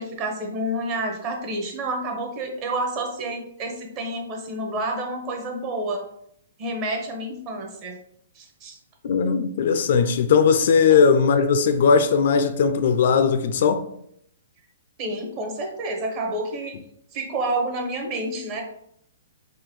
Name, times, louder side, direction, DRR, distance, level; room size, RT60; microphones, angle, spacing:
voice 1, 0.0-6.0 6.6-8.0 8.3-8.8 10.9-11.0 15.0-16.8 17.1-18.6, right 1 dB, 30° right, 0.8 m, -29 dB
voice 2, 9.0-13.8, left 6 dB, 55° left, 0.3 m, -18 dB
3.6 x 2.2 x 3.0 m
hypercardioid pair, 150°, 0 cm